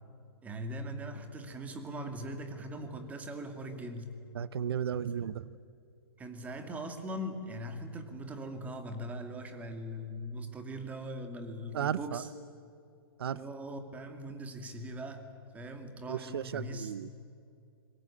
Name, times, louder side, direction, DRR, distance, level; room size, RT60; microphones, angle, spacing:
voice 1, 0.4-4.2 6.2-12.3 13.3-15.3 15.5-16.9, equal, 10° right, 6 dB, 2.4 m, -40 dB
voice 2, 4.3-5.5 11.7-12.2 13.2-13.4 16.1-17.1, right 9 dB, 70° right, 17 dB, 0.8 m, -34 dB
26.0 x 23.0 x 8.5 m, 2.6 s
hypercardioid pair, 150°, 13 cm